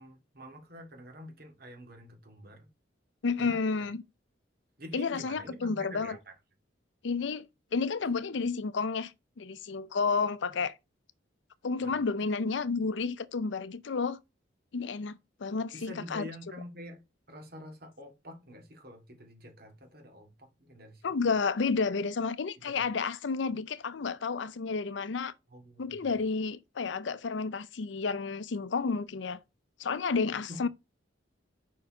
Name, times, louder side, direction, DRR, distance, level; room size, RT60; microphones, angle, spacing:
voice 1, 0.0-2.7 3.4-3.6 4.8-6.3 11.8-11.9 12.2-12.5 15.7-17.0 17.3-21.2 22.6-22.8 25.5-26.2 30.5-30.7, equal, 55° right, 2.2 m, -47 dB
voice 2, 3.2-4.0 4.9-6.2 7.0-7.5 7.7-9.1 9.4-10.7 11.6-14.2 14.7-16.2 21.0-25.3 25.8-29.4 29.8-30.7, left 4 dB, 70° left, 0.5 m, -31 dB
5.4 x 4.5 x 4.8 m
head